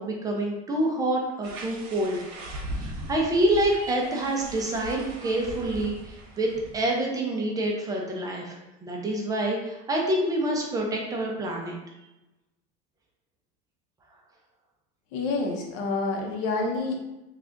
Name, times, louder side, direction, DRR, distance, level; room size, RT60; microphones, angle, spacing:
voice 1, 0.0-2.2 2.7-6.5 6.7-11.8, right 1 dB, 20° right, 0 dB, 0.5 m, -27 dB
sound 1, 1.4-6.8, right 1 dB, 75° right, 1.0 m, -39 dB
voice 2, 15.1-17.0, left 3 dB, 65° left, 1 dB, 0.9 m, -28 dB
3.3 x 2.4 x 3.8 m, 0.99 s
cardioid pair, 150°, 20 cm